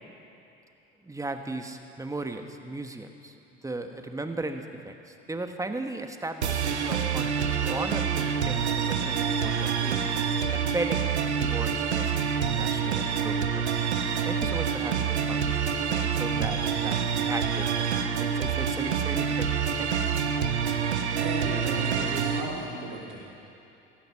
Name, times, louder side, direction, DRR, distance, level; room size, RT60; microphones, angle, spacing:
voice 1, 1.0-3.3 3.6-10.0 10.5-11.0 11.4-13.6 14.3-17.0 17.2-17.9 18.2-19.5 19.8-20.4, right 2 dB, 10° right, 6 dB, 1.3 m, -36 dB
sound 1, 6.4-22.4, right 7 dB, 85° right, 1.0 m, -27 dB
voice 2, 21.1-23.2, right 3 dB, 65° right, -3 dB, 4.0 m, -35 dB
16.0 x 15.0 x 5.7 m, 2.8 s
hypercardioid pair, 65°, 32 cm